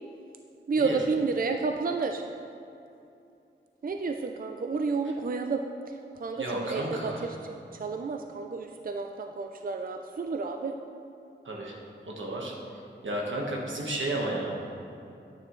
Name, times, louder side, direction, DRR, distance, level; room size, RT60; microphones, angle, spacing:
voice 1, 0.7-2.3 3.8-10.8, right 4 dB, 50° right, 5 dB, 0.4 m, -31 dB
voice 2, 6.3-7.3 11.4-11.8 12.1-12.5 13.0-14.7, right 1 dB, 85° right, -2 dB, 1.4 m, -32 dB
9.6 x 8.9 x 3.1 m, 2.7 s
wide cardioid pair, 60°, 19 cm